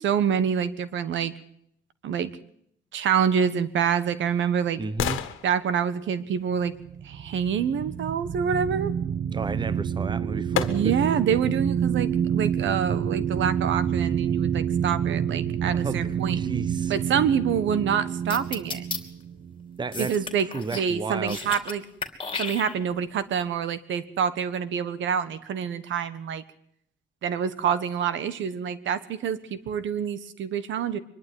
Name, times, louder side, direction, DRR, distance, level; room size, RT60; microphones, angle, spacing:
voice 1, 0.0-1.3 2.0-2.3 2.9-4.8 5.4-6.7 7.0-8.9 10.7-16.4 16.9-18.8 20.0-21.8 22.4-26.4 27.2-31.0, right 7 dB, 70° right, 14 dB, 1.4 m, -26 dB
sound 1, 3.5-7.5 9.6-9.7 10.5-11.2 11.7-11.8, left 11 dB, 85° left, 1.7 m, -35 dB
voice 2, 4.8-5.2 9.3-10.9 15.7-16.9 19.8-21.6, right 4 dB, 20° right, 17 dB, 0.9 m, -33 dB
sound 2, 6.7-20.3, right 8 dB, 50° right, 1.7 m, -28 dB
sound 3, 18.3-19.0 19.9-20.9 21.2-21.7 22.0-23.0, left 4 dB, 25° left, 2.8 m, -33 dB
24.0 x 11.5 x 9.6 m, 0.70 s
cardioid pair, 90°, 20 cm